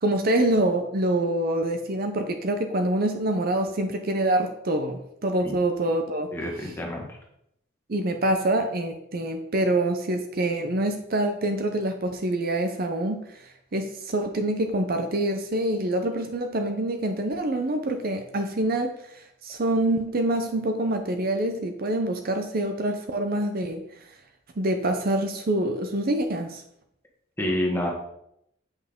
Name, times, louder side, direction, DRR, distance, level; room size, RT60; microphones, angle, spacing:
voice 1, 0.0-6.3 7.9-13.4 13.7-23.8 24.6-26.6, right 1 dB, 45° right, 5 dB, 0.6 m, -26 dB
voice 2, 6.3-7.1 27.4-27.9, left 1 dB, 10° left, -1 dB, 1.4 m, -28 dB
8.1 x 5.7 x 3.6 m, 0.77 s
head